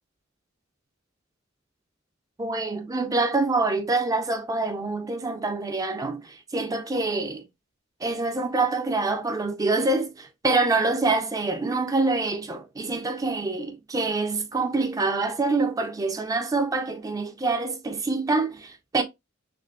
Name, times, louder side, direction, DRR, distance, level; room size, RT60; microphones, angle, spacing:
voice 1, 2.4-7.4 8.0-19.0, right 3 dB, 20° right, 0.4 m, -26 dB
3.7 x 3.1 x 2.2 m
head